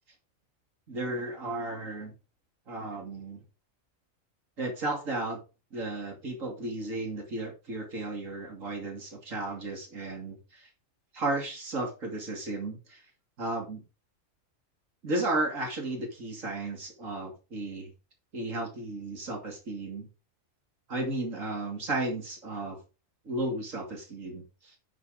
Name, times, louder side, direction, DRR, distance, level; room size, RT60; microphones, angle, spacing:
voice 1, 0.9-2.1 2.7-3.4 4.6-5.4 5.7-10.7 11.1-13.0 13.4-13.8 15.0-17.9 18.3-20.1 20.9-22.8 23.2-24.7, right 2 dB, 85° right, 1 dB, 3.0 m, -34 dB
9.9 x 7.4 x 3.8 m, 0.30 s
omnidirectional pair, 1.3 m